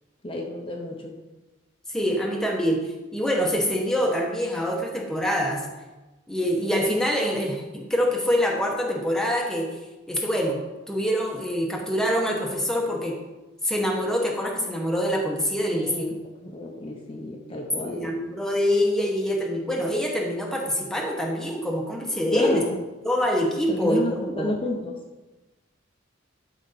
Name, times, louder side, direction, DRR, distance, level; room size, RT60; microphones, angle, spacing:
voice 1, 0.2-1.2 15.7-18.2 22.3-22.8 23.7-25.0, left 1 dB, 25° left, 0 dB, 0.9 m, -31 dB
voice 2, 1.9-5.7 6.3-9.7 10.1-10.6 10.9-13.2 13.6-16.1 17.8-22.6 23.0-24.5, equal, 5° left, -1 dB, 1.0 m, -25 dB
11.5 x 4.9 x 4.2 m, 1.1 s
head